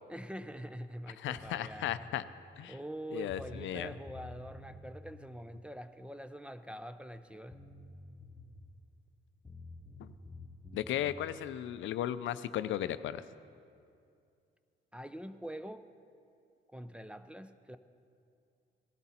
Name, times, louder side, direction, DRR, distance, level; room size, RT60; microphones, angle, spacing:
voice 1, 0.1-2.1 2.7-7.6 14.9-15.9 16.7-17.8, right 1 dB, 5° right, 11 dB, 0.5 m, -44 dB
voice 2, 1.2-2.2 2.6-2.7 3.1-3.9 10.0-10.1 10.7-13.2, left 11 dB, 75° left, 13 dB, 0.5 m, -35 dB
sound 1, 1.4-1.9 2.9-3.0 3.3-5.0 7.1-7.2 7.5-8.7 9.4-11.1, left 2 dB, 20° left, 1.2 m, -50 dB
17.0 x 12.5 x 4.3 m, 2.4 s
cardioid pair, 90°, 20 cm